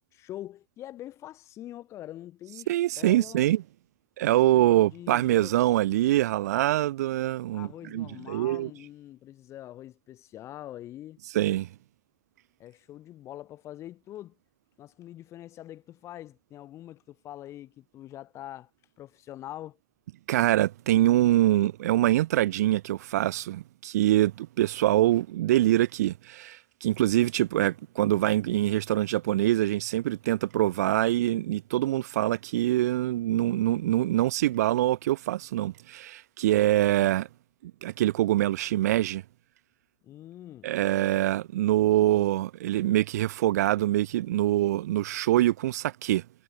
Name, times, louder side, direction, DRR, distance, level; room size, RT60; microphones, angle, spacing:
voice 1, 0.1-3.4 4.5-5.6 7.5-11.2 12.6-14.4 14.8-18.7 19.0-19.8 40.0-40.7, left 13 dB, 35° left, 5.7 m, -44 dB
voice 2, 2.7-3.6 4.2-8.7 11.3-11.7 20.3-37.3 37.8-39.2 40.6-46.2, right 14 dB, 80° right, 0.8 m, -24 dB
supercardioid pair, 140°, 9 cm